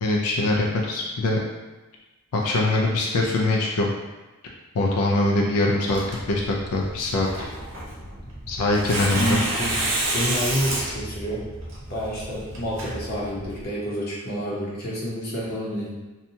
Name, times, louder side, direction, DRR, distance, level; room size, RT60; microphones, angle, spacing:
voice 1, 0.0-1.4 2.3-3.9 4.7-7.3 8.5-9.4, left 2 dB, 90° left, -1 dB, 0.4 m, -23 dB
Tearing, 5.9-13.6, right 1 dB, 60° right, 0.7 m, -30 dB
voice 2, 9.1-11.4 11.9-16.0, equal, 45° left, -5 dB, 0.7 m, -29 dB
2.7 x 2.2 x 2.7 m, 1.2 s
head